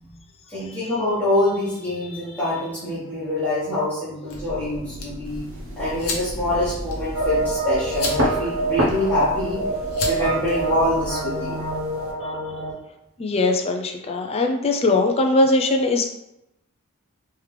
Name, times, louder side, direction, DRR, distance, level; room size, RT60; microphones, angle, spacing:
voice 1, 0.5-5.4 5.8-9.6 10.0-11.6, left 1 dB, 10° left, -13 dB, 1.1 m, -25 dB
sound 1, 4.3-11.1, left 2 dB, 90° left, 0.8 m, -34 dB
sound 2, 5.2-12.1, equal, 65° right, 0.6 m, -32 dB
sound 3, 7.1-12.7, right 2 dB, 35° right, 1.2 m, -26 dB
voice 2, 13.2-16.0, left 2 dB, 30° left, 3 dB, 0.4 m, -20 dB
3.3 x 3.2 x 3.2 m, 0.87 s
head